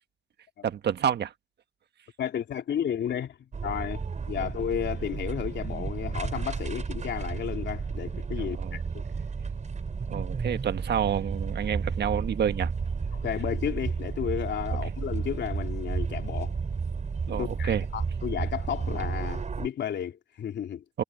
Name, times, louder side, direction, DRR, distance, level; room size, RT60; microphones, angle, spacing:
voice 1, 0.6-1.3 4.4-4.5 8.4-8.8 10.1-12.7 17.3-17.8 20.9-21.0, right 9 dB, 60° right, 1.5 m, -29 dB
voice 2, 2.2-9.0 13.1-16.6 17.3-20.8, left 9 dB, 65° left, 3.0 m, -33 dB
sound 1, 3.5-19.7, right 5 dB, 35° right, 5.6 m, -32 dB
cardioid pair, 90°, 20 cm